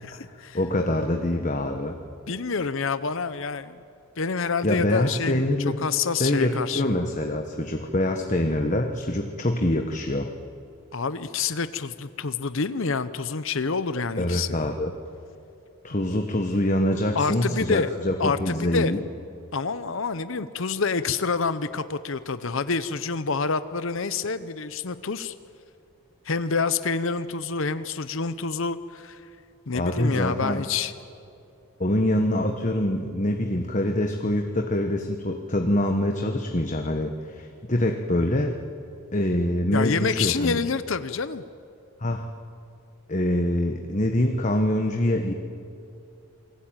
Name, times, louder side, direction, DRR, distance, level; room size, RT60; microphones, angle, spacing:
voice 1, 0.0-0.6 2.3-3.8 4.2-5.4 5.8-6.8 10.9-14.6 17.1-17.9 18.2-18.9 19.5-25.3 26.2-29.2 29.7-30.9 39.7-41.4, left 4 dB, 65° left, 12 dB, 0.8 m, -27 dB
voice 2, 0.5-2.0 4.6-5.8 6.2-10.3 14.2-14.9 15.8-19.0 29.7-30.6 31.8-38.6 39.1-40.6 42.0-42.2 43.1-45.3, left 1 dB, 35° left, 4 dB, 1.3 m, -25 dB
28.5 x 21.0 x 9.0 m, 2.5 s
head